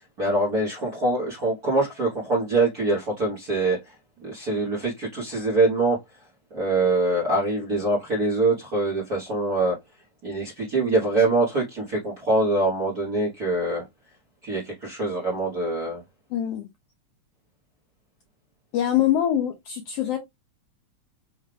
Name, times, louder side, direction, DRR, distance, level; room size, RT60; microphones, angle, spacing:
voice 1, 0.2-3.9 4.2-6.0 6.5-9.8 10.2-13.9 14.4-16.0, right 2 dB, 55° right, 1.0 m, -24 dB
voice 2, 16.3-16.7 18.7-20.2, left 11 dB, 80° left, 1.4 m, -24 dB
5.5 x 2.3 x 3.3 m
omnidirectional pair, 3.4 m